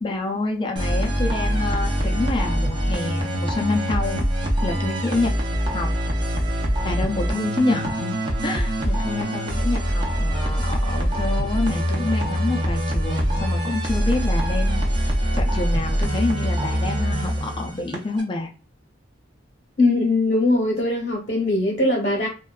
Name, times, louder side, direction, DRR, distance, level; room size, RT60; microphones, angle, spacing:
voice 1, 0.0-4.2 4.6-5.3 5.7-5.9 6.8-8.1 8.4-18.5, left 2 dB, 25° left, 1 dB, 0.4 m, -27 dB
sound 1, 0.8-18.2, equal, 25° right, 0.5 m, -24 dB
voice 2, 19.8-22.3, left 2 dB, 55° left, -3 dB, 0.8 m, -20 dB
2.6 x 2.2 x 2.3 m, 0.34 s
head